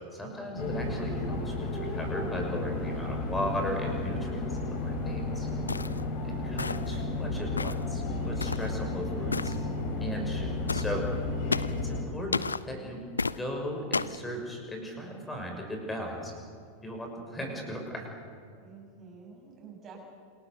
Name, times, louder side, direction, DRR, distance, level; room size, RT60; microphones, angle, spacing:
voice 1, 0.1-5.5 6.2-9.6 10.0-11.1 11.7-13.0 13.3-16.3 16.8-18.1, equal, 10° left, 2 dB, 6.2 m, -37 dB
sound 1, 0.6-12.0, left 2 dB, 45° left, 5.1 m, -33 dB
sound 2, 5.7-6.0 6.6-7.0 7.6-7.9 8.4-8.7 9.3-9.6 10.7-10.9 11.5-11.8 12.3-12.6 13.2-13.4 13.9-14.2, left 4 dB, 75° left, 0.5 m, -31 dB
voice 2, 18.6-20.0, right 5 dB, 25° right, 0 dB, 7.6 m, -49 dB
28.0 x 19.5 x 6.9 m, 2.3 s
figure-of-eight pair, 90°, 0 cm